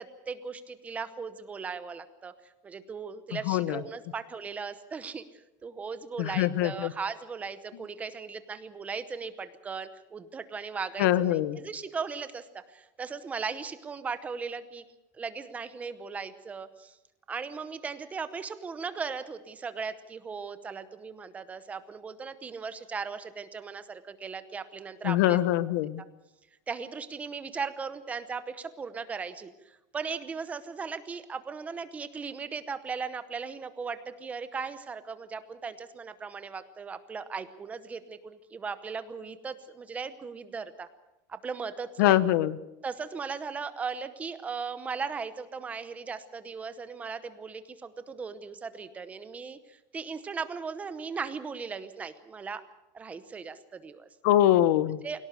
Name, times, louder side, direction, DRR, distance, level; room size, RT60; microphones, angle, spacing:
voice 1, 0.0-2.3 2.6-5.3 5.6-14.8 15.1-17.0 17.3-25.4 26.7-40.9 41.3-42.3 42.8-52.6 52.9-54.1 54.9-55.2, right 5 dB, 15° right, 12 dB, 0.8 m, -38 dB
voice 2, 3.5-3.8 6.2-6.9 11.0-11.6 25.0-26.0 42.0-42.6 54.2-55.0, left 13 dB, 70° left, 16 dB, 1.0 m, -23 dB
23.0 x 17.5 x 6.8 m, 0.97 s
cardioid pair, 175°, 10 cm